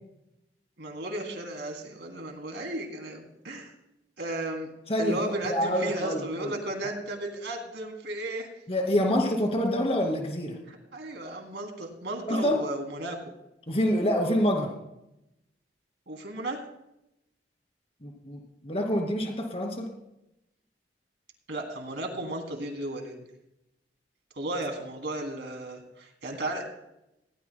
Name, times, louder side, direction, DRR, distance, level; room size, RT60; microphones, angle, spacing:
voice 1, 0.8-3.7 4.2-4.7 5.0-8.5 10.7-13.2 16.1-16.6 21.5-23.1 24.4-26.6, right 1 dB, 75° right, 3 dB, 2.9 m, -34 dB
voice 2, 5.4-6.5 8.7-10.6 12.3-12.6 13.7-14.7 18.0-19.9, equal, 35° left, 2 dB, 2.5 m, -26 dB
20.0 x 17.5 x 2.2 m, 0.87 s
head